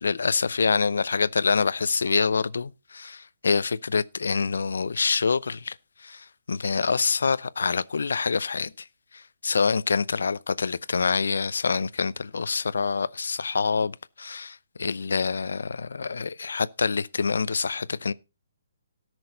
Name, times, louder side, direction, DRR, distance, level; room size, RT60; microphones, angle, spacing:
voice 1, 0.0-8.9 9.1-18.1, left 5 dB, 85° left, 0.6 m, -26 dB
18.0 x 6.2 x 3.9 m
hypercardioid pair, 170°, 0 cm